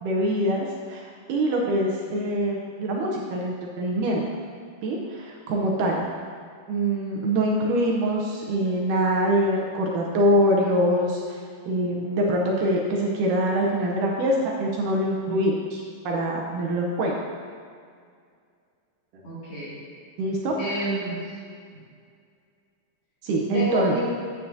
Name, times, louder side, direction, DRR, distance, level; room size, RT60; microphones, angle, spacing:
voice 1, 0.0-4.2 4.8-6.0 6.7-11.4 11.7-17.2 20.2-20.9 23.2-24.0, equal, 75° right, -1 dB, 2.1 m, -24 dB
voice 2, 19.2-19.8 20.6-21.2 23.5-24.0, equal, 45° left, -10 dB, 2.9 m, -29 dB
9.0 x 9.0 x 2.7 m, 2.2 s
omnidirectional pair, 4.0 m